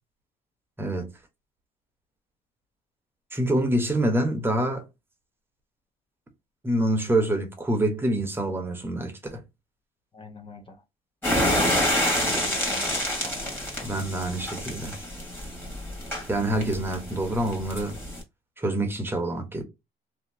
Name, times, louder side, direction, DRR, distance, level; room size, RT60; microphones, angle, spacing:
voice 1, 0.8-1.1 3.3-4.8 6.6-9.4 13.8-14.9 16.3-18.0 18.6-19.6, right 1 dB, 15° right, 1.1 m, -26 dB
voice 2, 10.1-10.8 11.8-13.7, left 3 dB, 30° left, 0.7 m, -45 dB
sound 1, 11.2-18.2, left 1 dB, 10° left, 1.7 m, -28 dB
2.9 x 2.8 x 2.7 m
cardioid pair, 110°, 17 cm